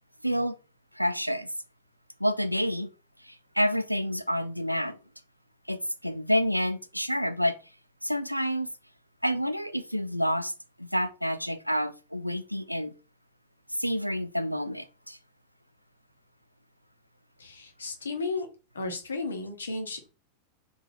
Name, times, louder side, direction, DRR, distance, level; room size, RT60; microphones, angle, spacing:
voice 1, 0.2-0.6 0.9-1.5 2.2-2.9 3.2-5.0 5.7-7.6 8.0-8.7 9.2-10.5 10.8-12.9 13.7-15.2, equal, 90° right, 0.3 m, -28 dB
voice 2, 17.4-18.5 18.7-20.1, left 3 dB, 70° left, 0.9 m, -34 dB
3.5 x 2.6 x 3.7 m
figure-of-eight pair, 90°, 0 cm